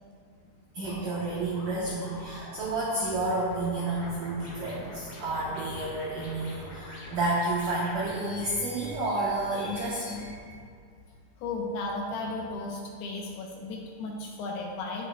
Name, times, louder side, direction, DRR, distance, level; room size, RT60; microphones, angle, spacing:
voice 1, 0.7-10.3, right 2 dB, 75° right, -6 dB, 1.9 m, -30 dB
sound 1, 0.8-10.4, left 2 dB, 55° left, 1.9 m, -45 dB
voice 2, 11.4-15.1, left 2 dB, 75° left, -1 dB, 2.6 m, -35 dB
17.0 x 6.6 x 2.2 m, 2.2 s
omnidirectional pair, 5.3 m